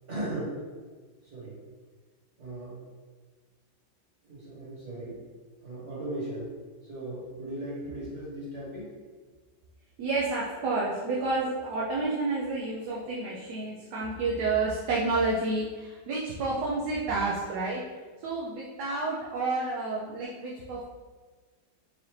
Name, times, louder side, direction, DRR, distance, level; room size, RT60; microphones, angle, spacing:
voice 1, 0.1-0.5 1.3-1.5 2.4-2.8 4.2-5.2 5.6-6.5 6.9-8.9, right 1 dB, 40° right, -8 dB, 1.6 m, -37 dB
voice 2, 10.0-17.8 18.2-20.8, right 3 dB, 70° right, -5 dB, 1.0 m, -30 dB
4.8 x 2.6 x 3.1 m, 1.4 s
omnidirectional pair, 2.0 m